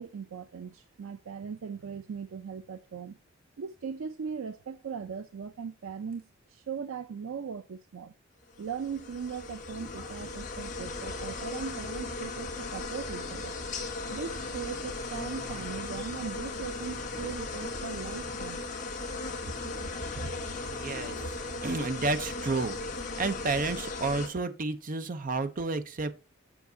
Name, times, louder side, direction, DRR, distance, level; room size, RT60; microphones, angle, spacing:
voice 1, 0.0-3.2 3.6-6.2 6.5-8.1 8.6-13.6 14.1-18.6, right 6 dB, 85° right, 0.4 m, -39 dB
sound 1, 8.5-24.3, left 3 dB, 40° left, 1.7 m, -37 dB
voice 2, 20.7-21.4 21.6-22.8 23.2-26.1, right 3 dB, 40° right, 0.6 m, -31 dB
7.1 x 7.1 x 2.7 m
head